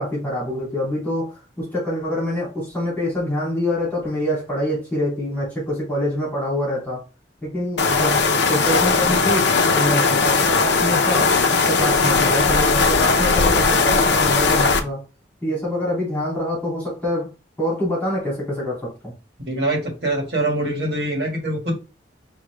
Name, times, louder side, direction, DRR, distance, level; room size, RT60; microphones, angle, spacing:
voice 1, 0.0-7.0 7.4-11.4 11.7-15.0 15.4-17.3 17.6-19.1, equal, 10° left, 2.7 m, -25 dB
sound 1, 7.8-14.8, left 4 dB, 70° left, 0.7 m, -18 dB
voice 2, 19.5-21.8, right 1 dB, 60° right, 1.7 m, -24 dB
4.9 x 2.8 x 3.3 m
head